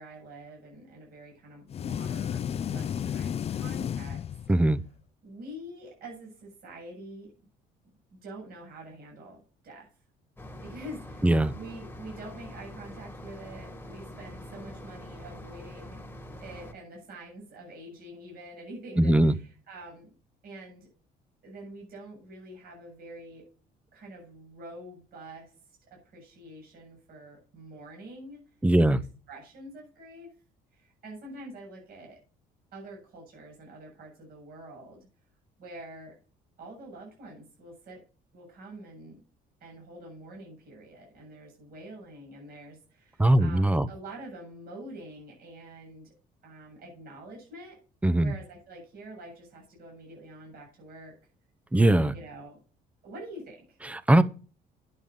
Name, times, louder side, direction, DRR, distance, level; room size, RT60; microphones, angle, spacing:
voice 1, 0.0-4.2 5.2-7.3 8.1-9.9 10.6-16.0 16.4-20.1 20.4-20.9 21.4-23.4 23.9-25.5 25.8-28.4 28.8-29.0 29.3-30.3 30.7-32.2 32.7-35.1 35.6-36.2 36.6-38.0 38.3-39.2 39.6-46.1 46.4-47.8 48.2-51.1 52.1-52.6 53.0-53.8, right 1 dB, 65° right, 7.4 m, -46 dB
sound 1, 1.7-4.9, left 9 dB, 35° left, 0.4 m, -33 dB
voice 2, 4.5-4.8 11.2-11.5 19.0-19.3 28.6-29.0 43.2-43.9 48.0-48.3 51.7-52.1 53.9-54.2, right 1 dB, 10° right, 0.7 m, -20 dB
sound 2, 10.4-16.7, left 1 dB, 10° left, 1.7 m, -44 dB
11.0 x 7.5 x 5.3 m
cardioid pair, 110°, 17 cm